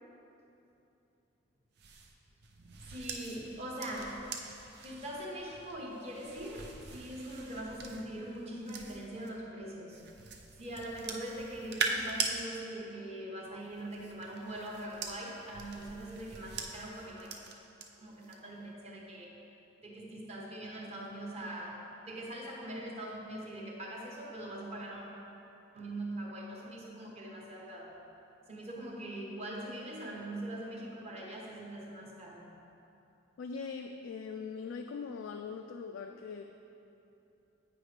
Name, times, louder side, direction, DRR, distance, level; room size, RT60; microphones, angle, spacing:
sound 1, 1.8-9.3 9.9-12.4 13.6-17.8 18.2-18.6, right 4 dB, 60° right, 0.5 m, -42 dB
voice 1, 2.9-4.3 4.8-10.1 10.6-17.3 18.0-19.3 19.8-25.0 25.7-28.0 28.5-32.5, right 1 dB, 35° right, -2 dB, 0.9 m, -42 dB
voice 2, 33.4-36.4, left 5 dB, 85° left, 4 dB, 0.3 m, -41 dB
8.7 x 5.0 x 3.2 m, 2.9 s
head